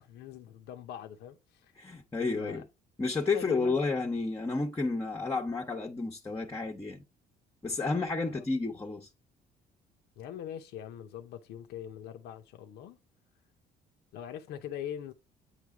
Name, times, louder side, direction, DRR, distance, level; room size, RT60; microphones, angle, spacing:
voice 1, 0.0-1.7 2.3-2.6 3.3-3.9 8.2-8.4 10.2-13.0 14.1-15.1, left 10 dB, 80° left, 0.8 m, -42 dB
voice 2, 1.8-2.7 3.0-7.0 7.6-9.1, left 3 dB, 15° left, 0.9 m, -31 dB
8.9 x 3.3 x 3.6 m
cardioid pair, 110°, 17 cm